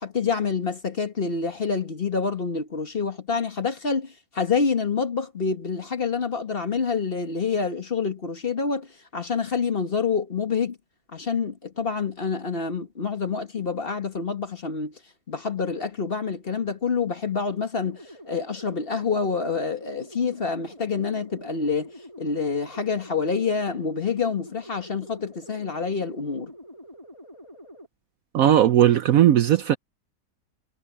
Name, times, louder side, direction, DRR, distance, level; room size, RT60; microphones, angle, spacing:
voice 1, 0.0-10.8 11.1-15.0 15.3-21.9 22.2-26.5, left 5 dB, 35° left, 1.5 m, -27 dB
sound 1, 17.9-27.9, equal, 15° left, 2.6 m, -46 dB
voice 2, 28.3-29.8, right 11 dB, 65° right, 0.9 m, -17 dB
omnidirectional pair, 1.8 m